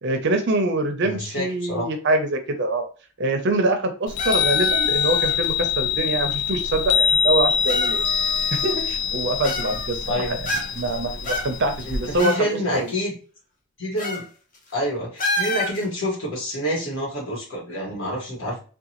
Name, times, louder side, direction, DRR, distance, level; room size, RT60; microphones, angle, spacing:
voice 1, 0.0-2.8 3.2-8.0 8.5-10.1 10.4-10.5 10.7-12.9, right 2 dB, 50° right, 6 dB, 0.6 m, -24 dB
voice 2, 1.0-1.9 10.1-10.3 11.8-13.1 13.8-14.2 14.7-18.6, equal, 60° left, -3 dB, 1.6 m, -27 dB
Chime, 4.1-12.2, left 7 dB, 90° left, 0.5 m, -24 dB
sound 1, 4.2-5.5 6.5-6.6 7.6-8.9 9.4-10.1 10.5-10.9 11.2-12.4 12.7-12.8 14.0-14.3 14.5-14.7 15.2-15.8, left 1 dB, 35° left, 0.7 m, -29 dB
3.7 x 2.3 x 2.9 m, 0.37 s
head